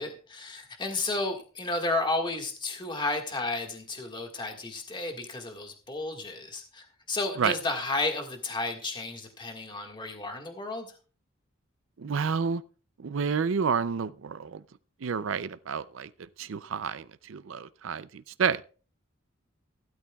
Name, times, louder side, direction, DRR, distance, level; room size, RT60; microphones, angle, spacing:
voice 1, 0.0-10.9, left 2 dB, 25° left, 1.7 m, -32 dB
voice 2, 12.0-12.6 13.0-14.6 15.0-18.6, right 6 dB, 80° right, 0.5 m, -30 dB
16.0 x 12.5 x 2.3 m
head